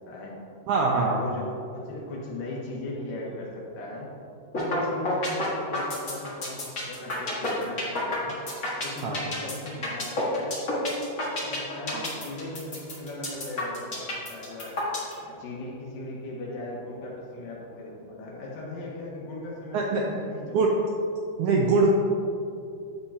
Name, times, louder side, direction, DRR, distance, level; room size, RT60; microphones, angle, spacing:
voice 1, 0.1-0.4 0.9-4.1 4.5-8.4 8.8-10.6 11.4-14.8 15.2-21.0, left 1 dB, 75° left, -4 dB, 2.9 m, -38 dB
voice 2, 0.7-1.2 9.0-9.2 11.9-12.0 19.7-20.0 20.5-20.7 21.4-21.9, right 3 dB, 85° right, -1 dB, 1.7 m, -22 dB
sound 1, 4.5-4.8 5.1-15.1, left 2 dB, 45° left, 1.1 m, -29 dB
10.5 x 7.2 x 2.8 m, 2.6 s
omnidirectional pair, 4.1 m